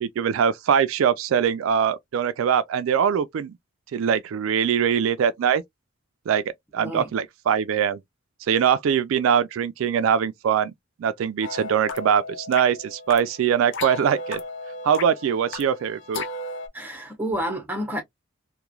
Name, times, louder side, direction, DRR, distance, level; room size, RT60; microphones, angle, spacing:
voice 1, 0.0-3.5 3.9-5.6 6.3-6.4 6.7-8.0 8.4-10.7 11.0-14.4 14.8-16.2, right 8 dB, 75° right, 0.3 m, -22 dB
voice 2, 6.8-7.1 16.7-18.0, equal, 10° right, 0.8 m, -29 dB
sound 1, 11.4-16.7, left 3 dB, 60° left, 0.5 m, -35 dB
3.0 x 2.2 x 2.2 m
head